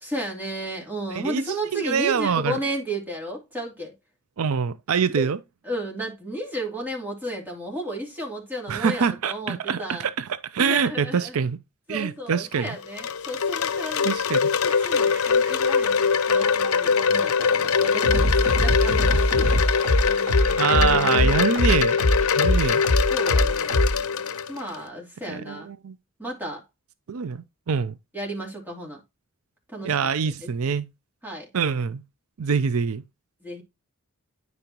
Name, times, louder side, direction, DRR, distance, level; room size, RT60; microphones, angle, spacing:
voice 1, 0.0-3.9 5.1-5.3 5.6-10.1 10.6-11.4 11.9-14.1 14.6-19.6 23.1-23.8 24.5-25.7 26.2-26.6 28.1-29.0 29.7-30.0 30.2-30.5 31.2-31.5 33.4-33.6, right 1 dB, 10° right, 2.7 m, -33 dB
voice 2, 1.7-2.6 4.4-5.4 8.7-11.6 11.9-12.7 14.0-14.5 20.6-22.0 22.4-22.8 25.3-26.0 27.1-27.9 29.8-30.9 31.5-32.0 32.4-33.0, right 6 dB, 80° right, 0.5 m, -25 dB
Wind chime, 12.5-24.8, left 6 dB, 85° left, 0.6 m, -22 dB
sound 1, 14.6-24.4, left 1 dB, 60° right, 4.0 m, -24 dB
9.6 x 5.3 x 2.9 m
head